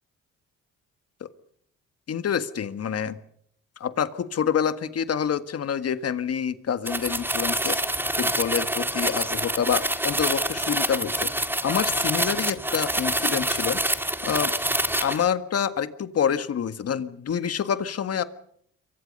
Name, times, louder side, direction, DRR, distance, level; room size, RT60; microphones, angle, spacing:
voice 1, 2.1-3.2 3.8-7.8 8.2-13.8 14.2-14.5 15.0-18.2, left 8 dB, 55° left, 12 dB, 1.7 m, -27 dB
sound 1, 6.9-15.2, right 1 dB, 5° right, 2.0 m, -26 dB
27.5 x 23.5 x 5.5 m, 0.67 s
cardioid pair, 90°, 30 cm